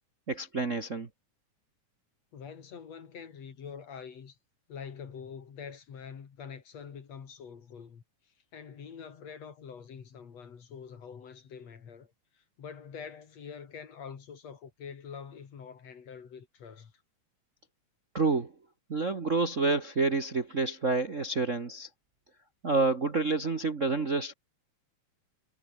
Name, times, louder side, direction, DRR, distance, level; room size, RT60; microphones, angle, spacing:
voice 1, 0.3-1.1 18.1-18.5 18.9-21.9 22.6-24.3, right 3 dB, 35° right, 1.4 m, -28 dB
voice 2, 2.3-4.4 4.7-8.0 8.5-16.9, left 6 dB, 60° left, 3.7 m, -45 dB
omnidirectional pair, 3.4 m